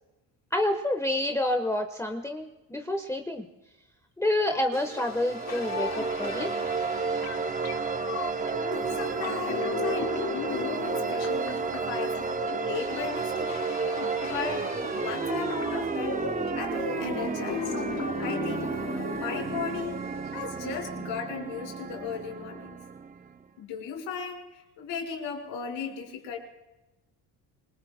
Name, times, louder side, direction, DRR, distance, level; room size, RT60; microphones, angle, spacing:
voice 1, 0.5-3.4 4.2-6.5, left 1 dB, 5° left, 4 dB, 1.1 m, -28 dB
sound 1, 4.5-20.5, left 7 dB, 35° left, 1.1 m, -37 dB
sound 2, 4.8-23.4, right 5 dB, 20° right, 0.6 m, -32 dB
voice 2, 8.4-13.5 14.2-16.2 16.5-17.7 18.2-18.7 19.1-20.0 20.3-22.8 23.6-26.4, left 6 dB, 85° left, 2 dB, 5.0 m, -36 dB
27.0 x 22.5 x 2.2 m, 0.99 s
cardioid pair, 100°, 43 cm